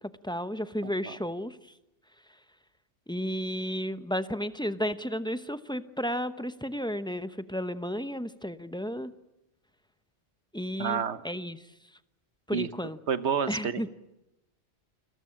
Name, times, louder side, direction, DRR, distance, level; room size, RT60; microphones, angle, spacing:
voice 1, 0.2-1.6 3.1-9.1 10.5-11.6 12.5-13.0 13.5-13.9, equal, 5° left, 12 dB, 0.8 m, -33 dB
voice 2, 0.8-1.1 10.8-11.2 12.5-12.7 13.1-13.8, right 6 dB, 80° right, 13 dB, 1.4 m, -29 dB
29.5 x 21.5 x 8.8 m, 0.93 s
omnidirectional pair, 1.1 m